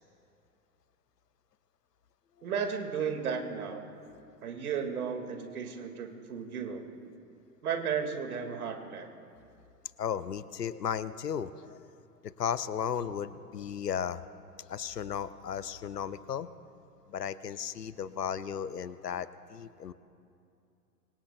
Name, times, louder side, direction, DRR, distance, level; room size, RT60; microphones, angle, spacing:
voice 1, 2.4-3.8 4.4-6.8 7.6-9.1, right 6 dB, 65° right, 5 dB, 2.0 m, -34 dB
voice 2, 10.0-11.8 12.2-14.2 14.7-16.5 17.1-19.9, left 8 dB, 75° left, 15 dB, 0.8 m, -35 dB
26.0 x 24.5 x 2.2 m, 2.6 s
figure-of-eight pair, 95°, 48 cm